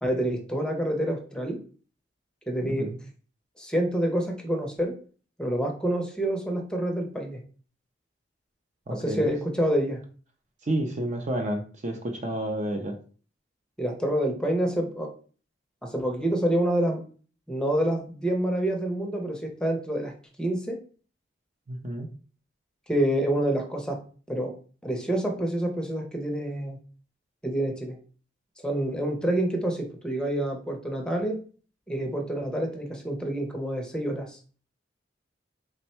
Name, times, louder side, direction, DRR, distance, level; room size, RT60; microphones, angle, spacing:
voice 1, 0.0-1.6 2.5-2.9 3.6-4.9 5.4-7.4 8.9-10.0 13.8-15.1 15.8-17.0 17.5-20.1 20.4-20.8 22.9-24.0 24.3-24.5 24.8-26.8 27.4-28.0 28.6-31.4 31.9-34.4, right 1 dB, 5° left, 2 dB, 0.6 m, -27 dB
voice 2, 8.9-9.3 10.6-13.0 21.7-22.1, right 1 dB, 40° right, 4 dB, 0.5 m, -30 dB
3.4 x 2.1 x 4.3 m, 0.40 s
head